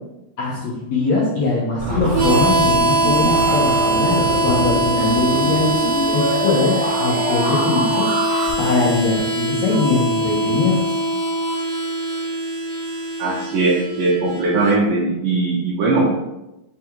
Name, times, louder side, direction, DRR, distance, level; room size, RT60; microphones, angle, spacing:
voice 1, 0.4-8.1 8.6-10.8, left 3 dB, 75° left, -6 dB, 1.5 m, -21 dB
sound 1, 1.8-8.5, right 1 dB, 35° right, 1.5 m, -25 dB
Harmonica, 2.1-14.7, right 2 dB, 55° right, 2.1 m, -22 dB
voice 2, 13.2-16.1, right 3 dB, 80° right, -4 dB, 1.9 m, -19 dB
6.0 x 3.7 x 4.5 m, 0.93 s
omnidirectional pair, 4.7 m